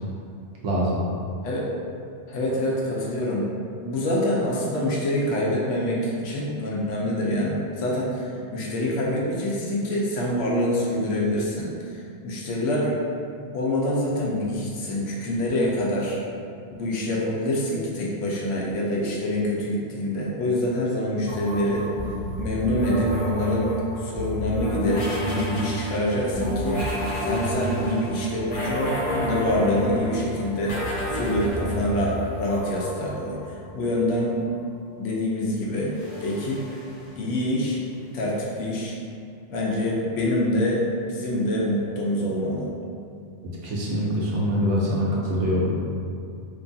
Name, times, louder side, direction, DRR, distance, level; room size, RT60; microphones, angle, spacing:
voice 1, 0.6-1.0 43.6-45.7, equal, 80° right, -5 dB, 1.0 m, -24 dB
voice 2, 2.3-3.5 3.8-11.7 12.2-13.0 13.5-16.2 16.8-21.9 22.4-23.7 24.0-26.8 27.2-30.8 31.1-33.4 33.7-34.4 35.0-35.9 36.2-36.8 37.2-37.8 38.1-39.0 39.5-40.8 41.1-42.7, left 1 dB, 85° left, -4 dB, 0.9 m, -25 dB
sound 1, 21.3-33.8 35.9-37.5, equal, 55° left, 0.6 m, -30 dB
2.9 x 2.3 x 2.6 m, 2.4 s
omnidirectional pair, 1.2 m